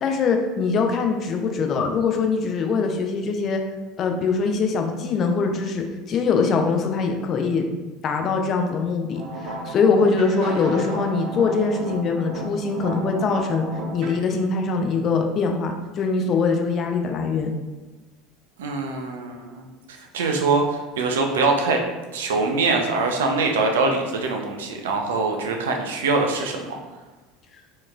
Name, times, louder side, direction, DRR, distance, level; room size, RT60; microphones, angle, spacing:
voice 1, 0.0-3.6 4.0-7.7 8.0-13.6 13.9-17.5, left 4 dB, 40° left, 4 dB, 0.5 m, -23 dB
sound 1, 9.1-14.2, right 2 dB, 50° right, 1.1 m, -33 dB
voice 2, 18.6-21.8 22.1-26.8, right 3 dB, 70° right, 2 dB, 0.5 m, -23 dB
4.3 x 3.0 x 2.3 m, 1.2 s
figure-of-eight pair, 70°, 0 cm